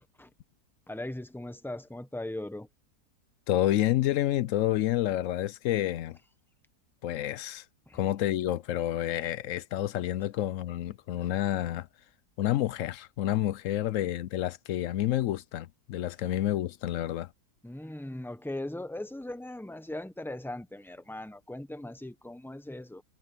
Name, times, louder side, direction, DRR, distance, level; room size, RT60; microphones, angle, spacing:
voice 1, 0.9-2.7 7.9-8.0 17.6-23.0, left 1 dB, ahead, 0.6 m, -39 dB
voice 2, 3.5-6.2 7.0-7.6 7.9-11.9 12.4-17.3, left 13 dB, 70° left, 0.8 m, -29 dB
omnidirectional pair, 1.7 m